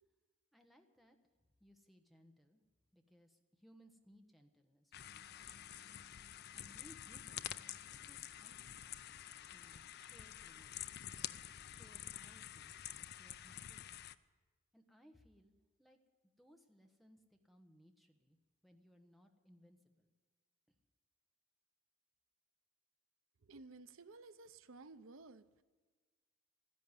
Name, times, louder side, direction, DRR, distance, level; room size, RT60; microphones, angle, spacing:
voice 1, 0.5-1.2 1.6-2.6 2.9-7.5 7.9-9.0 9.5-10.9 11.6-13.9 14.7-16.0 16.4-20.1 20.7-20.8, equal, ahead, 4 dB, 1.2 m, -66 dB
sound 1, 4.9-14.1, left 11 dB, 55° left, 0.5 m, -49 dB
voice 2, 23.4-25.6, right 3 dB, 90° right, 14 dB, 0.7 m, -55 dB
13.5 x 11.0 x 9.8 m, 1.4 s
head